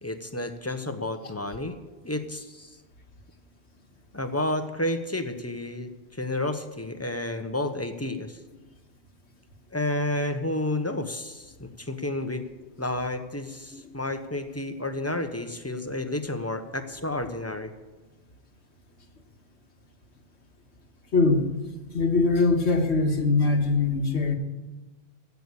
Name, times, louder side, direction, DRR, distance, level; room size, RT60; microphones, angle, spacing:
voice 1, 0.0-1.8 2.0-2.8 4.1-8.4 9.7-12.4 12.8-17.7, left 1 dB, 15° left, 8 dB, 1.0 m, -31 dB
voice 2, 21.1-21.5 21.9-24.4, left 3 dB, 80° left, 4 dB, 1.8 m, -22 dB
15.5 x 8.2 x 8.4 m, 1.2 s
omnidirectional pair, 1.1 m